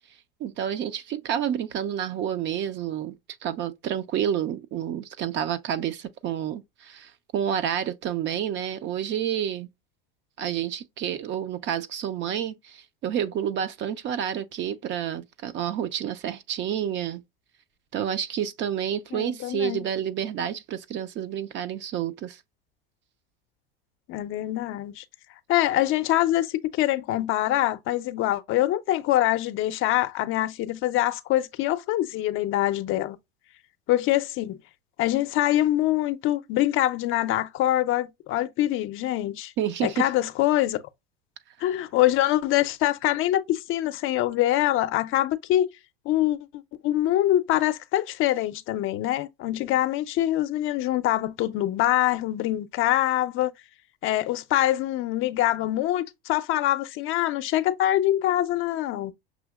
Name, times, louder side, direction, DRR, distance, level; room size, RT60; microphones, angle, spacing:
voice 1, 0.4-3.2 3.4-9.7 10.4-17.2 17.9-22.4 39.6-40.1, right 9 dB, 40° right, 0.5 m, -29 dB
voice 2, 19.1-19.9 24.1-25.0 25.5-33.2 33.9-34.6 35.0-39.5 39.8-40.8 41.6-45.7 46.0-46.4 46.7-53.5 54.0-59.1, left 14 dB, 45° left, 0.6 m, -24 dB
6.2 x 2.7 x 2.2 m
hypercardioid pair, 105°, 30 cm